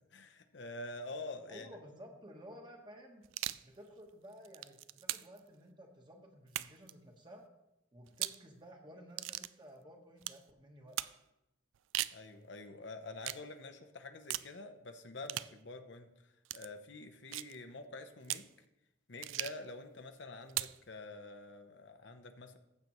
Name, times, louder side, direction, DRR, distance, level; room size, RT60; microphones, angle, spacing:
voice 1, 0.1-1.8 12.1-18.5 19.1-22.6, left 2 dB, 65° left, 7 dB, 0.8 m, -47 dB
voice 2, 1.5-3.2 3.6-7.4 7.9-11.0, equal, 25° right, 2 dB, 1.2 m, -54 dB
sound 1, 3.2-3.7 4.3-5.4 6.5-6.9 8.1-8.4 9.2-9.5 10.2-10.4 11.0-11.2 11.7-12.2 13.2-13.4 14.3-14.5 15.3-15.5 16.4-16.7 17.3-17.6 18.2-18.5 19.2-19.7 20.5-20.8, right 15 dB, 85° right, 0.3 m, -39 dB
15.0 x 6.8 x 3.1 m, 0.91 s
head